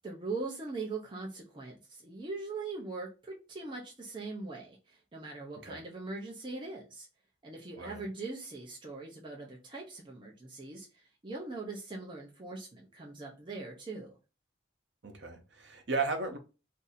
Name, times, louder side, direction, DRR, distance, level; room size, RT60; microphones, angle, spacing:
voice 1, 0.0-7.1 7.4-14.1, right 3 dB, 25° right, 0.6 m, -41 dB
voice 2, 15.0-16.4, right 4 dB, 65° right, 0.8 m, -35 dB
2.7 x 2.6 x 4.0 m
head